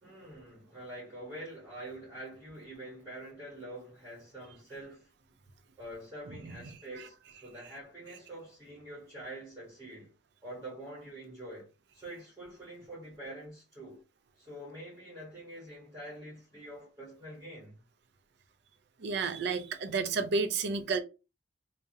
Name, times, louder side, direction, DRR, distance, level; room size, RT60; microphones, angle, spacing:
voice 1, 0.0-5.1 5.8-10.1 10.4-14.0 14.4-17.8, right 1 dB, 20° right, 0.9 m, -46 dB
voice 2, 19.0-21.0, right 4 dB, 65° right, 0.4 m, -31 dB
2.3 x 2.0 x 2.6 m
head